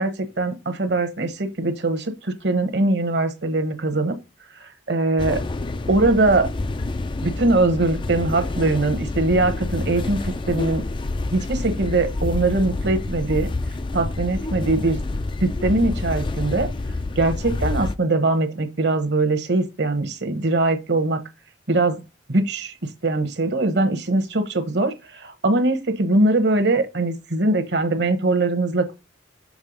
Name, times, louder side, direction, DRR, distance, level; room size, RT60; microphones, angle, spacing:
voice 1, 0.0-4.2 4.6-5.4 5.9-6.5 7.2-10.8 11.3-13.5 13.9-15.0 15.4-16.7 17.2-21.2 21.7-22.0 22.3-22.7 23.0-28.9, right 2 dB, 60° right, 1.1 m, -21 dB
sound 1, 5.2-18.0, left 2 dB, 25° left, 0.4 m, -28 dB
6.4 x 3.4 x 5.3 m
head